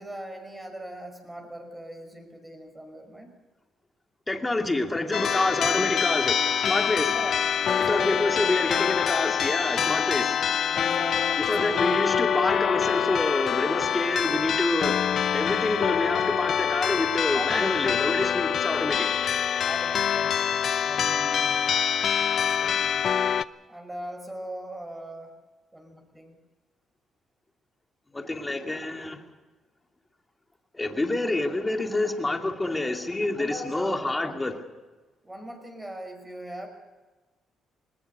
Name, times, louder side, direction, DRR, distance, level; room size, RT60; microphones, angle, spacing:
voice 1, 0.0-3.4 7.1-8.5 10.7-12.1 17.3-17.9 19.6-21.8 22.3-23.1 23.7-25.3 25.7-26.4 33.4-34.4 35.2-36.7, right 1 dB, 10° right, 5 dB, 5.8 m, -40 dB
voice 2, 4.3-7.2 7.8-10.4 11.5-15.0 15.3-19.1 28.1-29.2 30.7-34.6, left 2 dB, 15° left, 4 dB, 2.4 m, -27 dB
sound 1, 5.1-23.4, left 8 dB, 60° left, 0.6 m, -25 dB
21.0 x 20.0 x 6.7 m, 1.3 s
cardioid pair, 90°, 0 cm